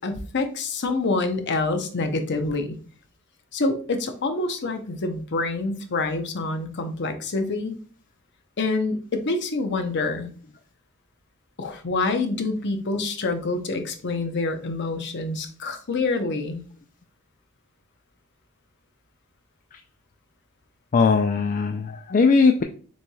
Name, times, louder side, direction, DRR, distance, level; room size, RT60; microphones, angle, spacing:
voice 1, 0.0-2.8 3.5-7.8 8.6-10.3 11.6-16.6, left 3 dB, 50° left, 7 dB, 0.7 m, -26 dB
voice 2, 20.9-22.6, left 4 dB, 35° left, 5 dB, 0.3 m, -19 dB
6.8 x 3.1 x 2.3 m, 0.42 s
head